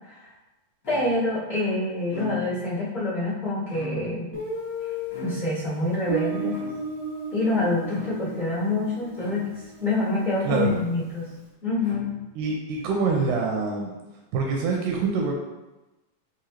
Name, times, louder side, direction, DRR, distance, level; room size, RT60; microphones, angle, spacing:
sound 1, 0.8-1.4 2.0-2.7 3.6-4.3 5.1-5.8 6.5-7.1 7.8-8.4 9.1-9.7 10.5-11.1 11.8-12.5 13.1-13.8, left 4 dB, 45° left, 1.7 m, -43 dB
voice 1, 0.9-4.3 5.2-6.6 7.3-9.5 9.8-11.2 11.6-12.1, left 2 dB, 75° left, -13 dB, 0.5 m, -26 dB
Guitar, 4.3-11.0, right 2 dB, 65° right, 1.0 m, -35 dB
voice 2, 12.4-13.9 14.3-15.3, right 4 dB, 80° right, 0 dB, 2.0 m, -25 dB
4.9 x 3.3 x 2.9 m, 1.1 s
omnidirectional pair, 3.8 m